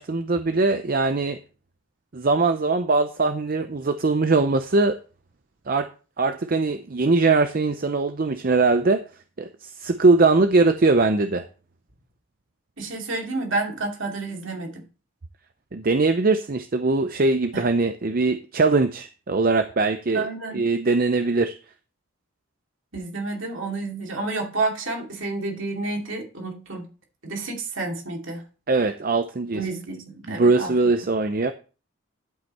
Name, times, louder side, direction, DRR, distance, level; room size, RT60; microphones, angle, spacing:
voice 1, 0.0-1.4 2.1-5.0 5.7-5.9 6.2-9.0 9.4-9.5 9.8-11.5 15.7-20.2 20.5-21.5 28.7-29.6 30.3-31.5, right 3 dB, 40° right, 0.5 m, -21 dB
voice 2, 12.8-14.8 17.5-17.7 20.1-20.6 22.9-26.9 27.2-28.4 29.5-30.7, right 3 dB, 60° right, 2.6 m, -30 dB
11.5 x 5.6 x 4.2 m
head